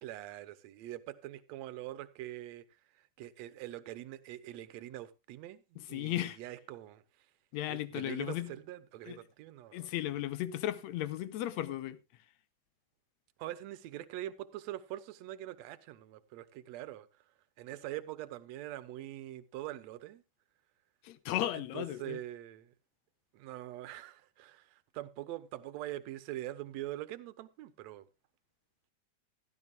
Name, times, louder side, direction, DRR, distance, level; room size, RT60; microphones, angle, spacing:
voice 1, 0.0-2.6 3.2-7.0 7.7-9.9 13.4-17.1 17.6-20.2 21.5-22.7 23.3-28.1, right 14 dB, 75° right, 2.0 m, -43 dB
voice 2, 5.8-6.4 7.5-8.5 9.1-9.2 9.7-12.0 21.0-22.2, left 13 dB, 75° left, 2.1 m, -35 dB
16.5 x 12.0 x 2.4 m
omnidirectional pair, 3.3 m